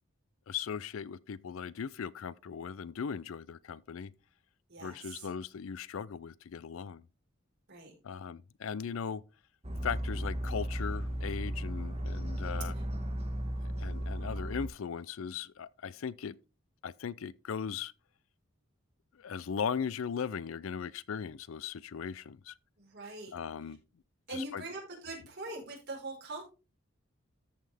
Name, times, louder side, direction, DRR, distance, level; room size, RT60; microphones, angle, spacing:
voice 1, 0.5-4.1 4.8-7.0 8.0-9.2 9.8-12.7 13.7-16.4 16.8-17.9 19.1-22.6 23.3-23.8 24.3-24.6, left 6 dB, 75° left, 0.4 m, -38 dB
voice 2, 4.7-5.3 7.7-7.9 12.7-12.8 22.8-23.3 24.3-26.4, right 2 dB, 55° right, 4.6 m, -42 dB
sound 1, 9.6-14.7, equal, 30° right, 1.3 m, -35 dB
13.5 x 5.6 x 3.4 m
head